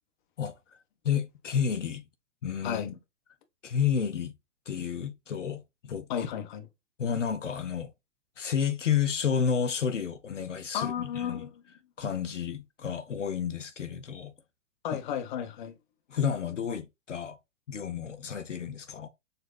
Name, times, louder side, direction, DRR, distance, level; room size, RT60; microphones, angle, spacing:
voice 1, 1.0-2.0 2.4-3.0 3.6-4.3 4.7-6.3 7.0-7.9 8.4-11.5 12.0-14.3 14.9-15.0 16.1-17.4 17.7-19.1, left 7 dB, 70° left, 0.7 m, -31 dB
voice 2, 6.1-6.7 10.7-11.5 14.8-15.7, left 9 dB, 40° left, 0.7 m, -33 dB
6.6 x 2.2 x 2.3 m
figure-of-eight pair, 110°, 38 cm